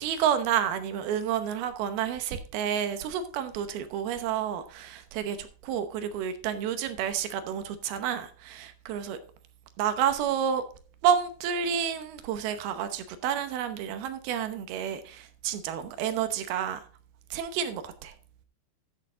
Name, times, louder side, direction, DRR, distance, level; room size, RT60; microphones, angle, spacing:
voice 1, 0.0-9.2 9.8-10.6 11.0-16.8 17.3-18.1, right 8 dB, 75° right, 2.7 m, -30 dB
13.0 x 6.6 x 3.7 m
omnidirectional pair, 4.8 m